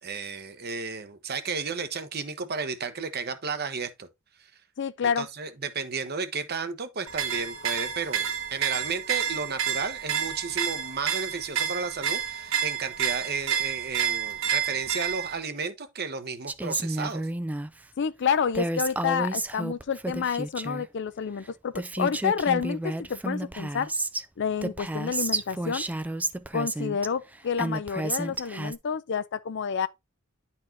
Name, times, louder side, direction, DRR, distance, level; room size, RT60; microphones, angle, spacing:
voice 1, 0.0-4.1 5.0-17.2, right 5 dB, 45° right, 1.0 m, -33 dB
voice 2, 4.8-5.3 18.0-23.9 24.4-25.9 26.5-29.9, left 6 dB, 55° left, 0.4 m, -29 dB
sound 1, 7.1-15.4, right 8 dB, 65° right, 1.2 m, -29 dB
Female speech woman speaking, 16.5-17.7 18.5-20.9 21.5-21.6 21.7-24.2 24.6-27.1 27.6-28.8, right 2 dB, 5° right, 0.3 m, -31 dB
10.5 x 4.2 x 2.7 m
head